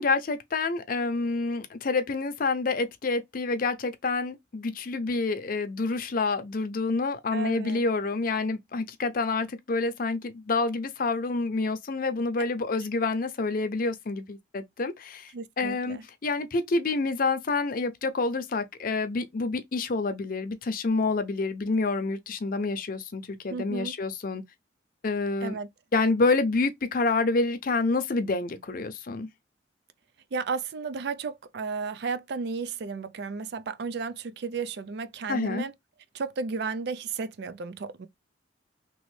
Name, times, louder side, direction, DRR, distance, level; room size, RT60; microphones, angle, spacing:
voice 1, 0.0-15.3 15.6-24.4 25.0-25.6 25.9-29.3 35.3-35.6, left 3 dB, 50° left, 0.6 m, -28 dB
voice 2, 7.3-7.8 15.3-16.0 23.5-23.9 25.4-25.7 30.3-35.7 36.1-38.1, right 4 dB, 65° right, 0.4 m, -33 dB
3.1 x 2.5 x 3.2 m
head